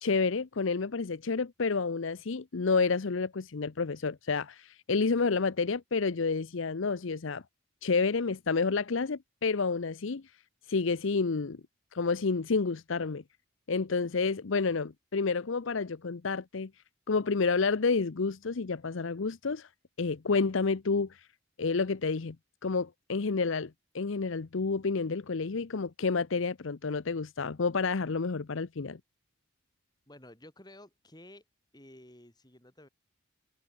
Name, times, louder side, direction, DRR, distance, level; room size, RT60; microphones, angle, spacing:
voice 1, 0.0-7.4 7.8-10.2 10.7-11.6 11.9-13.2 13.7-16.7 17.1-19.7 20.0-21.1 21.6-22.4 22.6-29.0, left 4 dB, 65° left, 0.7 m, -29 dB
voice 2, 30.1-31.4 31.7-32.9, left 1 dB, 20° left, 3.7 m, -53 dB
head